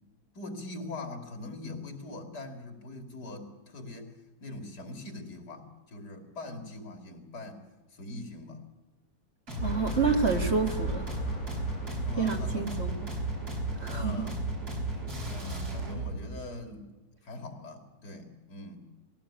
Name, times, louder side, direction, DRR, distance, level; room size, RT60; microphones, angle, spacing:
voice 1, 0.3-4.1 4.4-8.6 11.9-13.1 13.9-14.4 14.9-16.9 17.2-18.9, left 2 dB, 85° left, 4 dB, 3.1 m, -42 dB
sound 1, 9.5-16.2, right 2 dB, 70° right, 5.6 m, -34 dB
sound 2, 9.6-15.2, left 3 dB, 50° left, 1.8 m, -41 dB
voice 2, 9.6-11.1 12.2-12.9 13.8-14.2, right 5 dB, 40° right, 4 dB, 1.8 m, -28 dB
20.0 x 16.0 x 8.7 m, 1.1 s
omnidirectional pair, 1.7 m